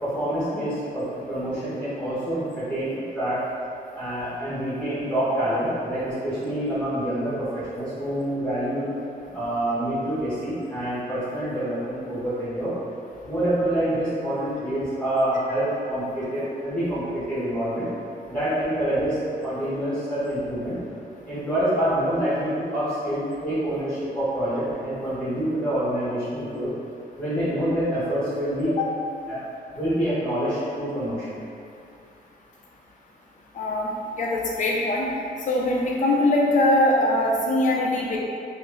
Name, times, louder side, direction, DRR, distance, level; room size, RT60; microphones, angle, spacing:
voice 1, 0.0-3.4 3.9-8.8 9.3-12.7 13.2-17.9 18.3-20.8 21.3-26.7 27.2-28.7 29.3-29.4 29.7-31.4, right 1 dB, 10° left, -15 dB, 1.2 m, -26 dB
voice 2, 33.5-33.9 34.2-35.1 35.5-38.2, left 1 dB, 50° left, -3 dB, 0.5 m, -22 dB
2.8 x 2.7 x 3.3 m, 2.6 s
wide cardioid pair, 155°, 16 cm